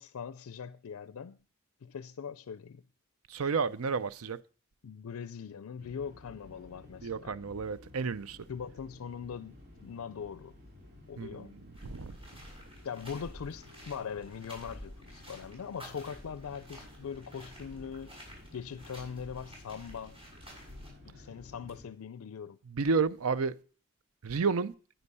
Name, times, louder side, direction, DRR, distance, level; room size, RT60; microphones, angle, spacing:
voice 1, 0.0-1.4 1.8-2.8 4.8-7.4 8.5-10.6 11.1-11.6 12.8-18.2 18.5-20.2 21.0-22.6, left 7 dB, 85° left, 0.4 m, -41 dB
voice 2, 3.3-4.4 7.0-8.4 11.2-11.5 11.8-12.2 22.8-23.6 24.2-24.7, right 5 dB, 85° right, 0.6 m, -31 dB
sound 1, 5.8-21.9, left 1 dB, 45° right, 3.1 m, -54 dB
sound 2, 11.7-20.9, equal, 25° right, 6.4 m, -50 dB
9.9 x 9.0 x 5.5 m
head